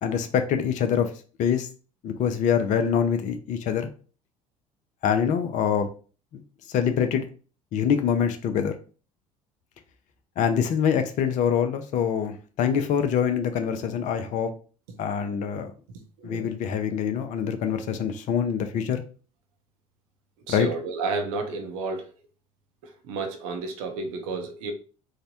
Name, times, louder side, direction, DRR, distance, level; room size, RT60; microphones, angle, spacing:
voice 1, 0.0-1.1 1.4-1.7 2.0-3.9 5.0-5.9 6.3-6.4 6.7-7.2 7.7-8.7 10.4-14.5 15.0-15.7 16.2-19.0 20.5-20.7, left 7 dB, 40° left, 8 dB, 0.4 m, -25 dB
voice 2, 20.5-22.1 23.1-24.7, right 4 dB, 65° right, 5 dB, 0.6 m, -31 dB
3.2 x 2.1 x 2.7 m, 0.37 s
figure-of-eight pair, 60°, 19 cm